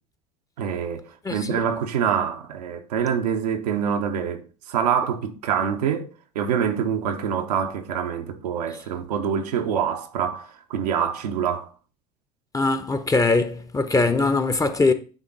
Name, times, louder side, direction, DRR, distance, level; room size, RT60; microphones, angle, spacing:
voice 1, 0.6-6.1 6.3-11.7, right 8 dB, 70° right, 0.9 m, -25 dB
voice 2, 12.5-14.9, left 3 dB, 15° left, 0.9 m, -21 dB
9.2 x 3.8 x 3.8 m
figure-of-eight pair, 65°, 21 cm